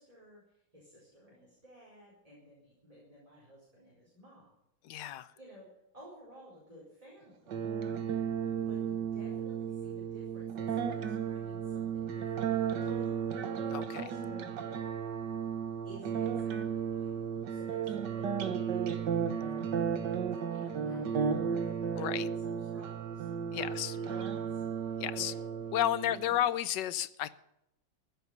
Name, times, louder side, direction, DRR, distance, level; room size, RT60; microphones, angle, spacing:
voice 1, 0.0-4.5 5.0-5.7 5.9-7.6 8.6-13.3 13.9-14.9 15.8-19.4 20.5-21.6 21.9-23.3 23.5-25.5 26.0-26.4, equal, 15° right, -5 dB, 4.8 m, -54 dB
voice 2, 4.8-5.3 13.7-14.0 21.9-22.2 23.5-24.0 25.0-25.3 25.7-27.3, left 12 dB, 70° left, 16 dB, 1.3 m, -32 dB
sound 1, 7.5-26.5, right 7 dB, 65° right, 1.7 m, -34 dB
15.0 x 8.2 x 9.3 m, 0.81 s
omnidirectional pair, 2.1 m